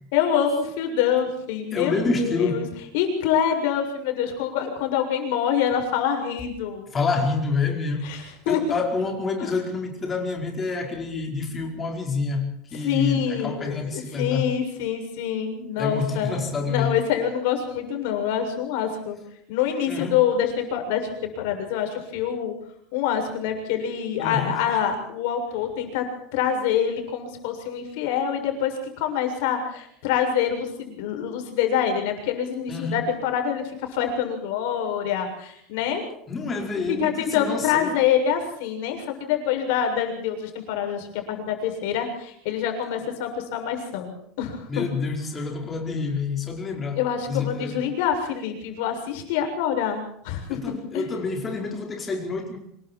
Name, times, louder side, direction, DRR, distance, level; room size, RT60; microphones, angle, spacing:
voice 1, 0.1-2.6 2.9-6.9 8.0-8.6 9.4-9.5 12.8-16.4 16.7-19.2 19.5-22.5 22.9-26.1 26.3-36.0 36.4-36.6 36.9-44.9 47.0-51.0, left 8 dB, 65° left, 7.1 m, -26 dB
voice 2, 1.7-2.7 6.9-14.5 15.8-17.0 19.9-20.2 24.2-24.7 32.7-33.0 36.3-38.0 44.7-47.8 50.5-52.6, left 4 dB, 20° left, 4.8 m, -28 dB
26.5 x 22.5 x 4.6 m
cardioid pair, 170°, 0 cm